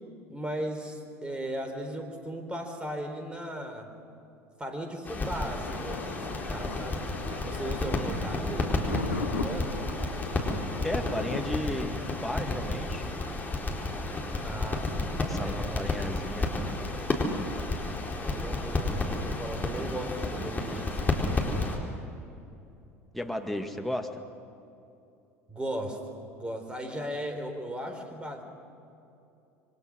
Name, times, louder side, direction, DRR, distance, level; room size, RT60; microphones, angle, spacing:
voice 1, 0.0-3.9 4.6-7.0 7.4-8.8 9.1-9.8 14.4-15.1 15.4-15.9 18.2-18.9 19.2-21.2 25.5-26.0 26.3-28.4, right 1 dB, 15° right, 5 dB, 4.2 m, -37 dB
sound 1, 5.0-21.8, left 2 dB, 20° left, 4.3 m, -31 dB
Thunder, 5.7-11.4, left 5 dB, 80° left, 1.2 m, -38 dB
voice 2, 10.8-13.1 15.2-16.5 23.1-24.2, left 1 dB, ahead, 4 dB, 2.0 m, -34 dB
27.0 x 23.5 x 6.4 m, 2.7 s
figure-of-eight pair, 70°, 8 cm